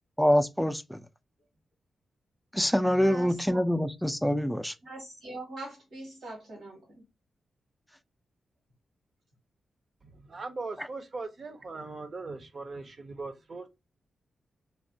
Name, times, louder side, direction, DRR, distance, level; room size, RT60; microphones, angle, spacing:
voice 1, 0.2-1.0 2.5-4.7 10.8-10.9, equal, ahead, 0.4 m, -25 dB
voice 2, 3.0-3.6 4.8-7.0, right 2 dB, 80° right, 1.3 m, -42 dB
voice 3, 10.1-13.7, right 3 dB, 55° right, 0.7 m, -39 dB
3.2 x 2.1 x 2.7 m
supercardioid pair, 45°, 0 cm